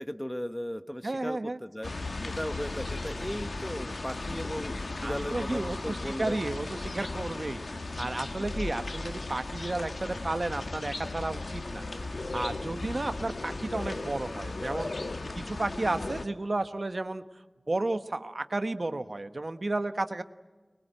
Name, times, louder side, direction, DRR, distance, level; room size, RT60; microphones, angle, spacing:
voice 1, 0.0-1.9 2.2-4.7 5.0-6.4, equal, 10° left, 10 dB, 1.2 m, -36 dB
voice 2, 1.0-1.6 5.0-14.9 15.3-17.2 17.7-20.2, right 2 dB, 60° right, 10 dB, 1.2 m, -33 dB
sound 1, 1.8-16.3, left 2 dB, 85° left, 1.3 m, -36 dB
24.5 x 22.0 x 9.0 m, 1.3 s
wide cardioid pair, 50°, 0 cm